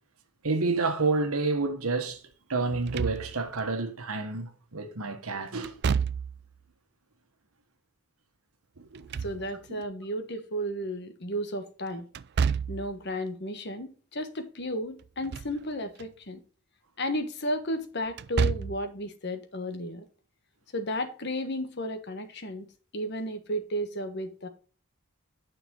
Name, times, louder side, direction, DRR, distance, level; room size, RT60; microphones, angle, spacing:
voice 1, 0.4-2.2 2.5-5.7 8.8-9.1, right 3 dB, 80° right, 1.5 m, -29 dB
Slam / Thump thud, 2.7-3.6 5.6-6.5 8.8-9.8 12.1-12.9 15.0-15.6 16.0-16.1 18.1-18.9, right 6 dB, 50° right, 0.3 m, -30 dB
voice 2, 9.2-12.1 12.7-16.4 17.0-20.0 20.7-22.7 22.9-24.5, equal, 50° left, 1.3 m, -33 dB
9.3 x 6.0 x 3.8 m
head